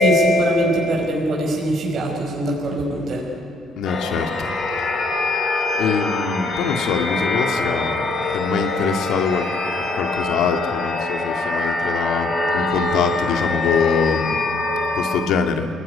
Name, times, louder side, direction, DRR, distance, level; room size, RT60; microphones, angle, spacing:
voice 1, 0.0-3.3, equal, 50° right, -1 dB, 5.3 m, -20 dB
voice 2, 3.8-4.5 5.8-9.5 9.9-14.4 14.9-15.7, left 6 dB, 85° left, 5 dB, 2.2 m, -23 dB
sound 1, 3.8-15.2, left 2 dB, 45° left, 4.0 m, -24 dB
28.5 x 20.0 x 9.9 m, 2.5 s
cardioid pair, 125°, 0 cm